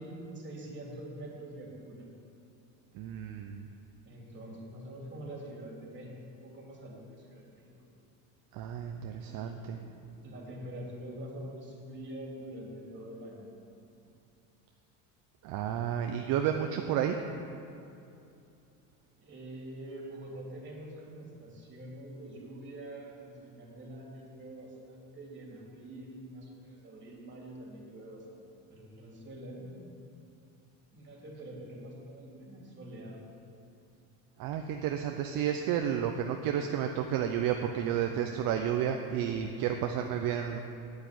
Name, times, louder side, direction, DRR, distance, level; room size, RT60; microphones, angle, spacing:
voice 1, 0.0-2.1 4.0-7.7 9.1-9.8 10.2-13.5 19.2-29.9 30.9-33.2, right 1 dB, 25° right, -2 dB, 3.2 m, -45 dB
voice 2, 2.9-3.7 8.5-9.8 15.4-17.2 34.4-40.6, right 9 dB, 55° right, 4 dB, 0.8 m, -31 dB
8.6 x 8.3 x 9.3 m, 2.6 s
cardioid pair, 125°, 40 cm